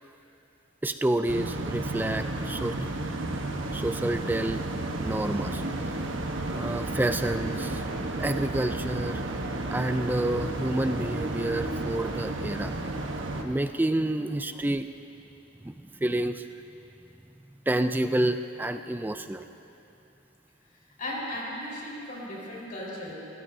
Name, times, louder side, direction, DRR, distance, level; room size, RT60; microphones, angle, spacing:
voice 1, 0.8-2.8 3.7-4.6 5.0-5.6 6.5-7.8 8.2-9.2 9.7-13.0 13.4-14.9 15.6-16.5 17.7-19.5, right 1 dB, 10° right, 9 dB, 0.3 m, -29 dB
sound 1, 1.3-13.4, right 2 dB, 75° right, 1.1 m, -32 dB
voice 2, 21.0-23.2, left 1 dB, 45° left, -5 dB, 4.3 m, -36 dB
26.0 x 16.0 x 2.7 m, 2.9 s
head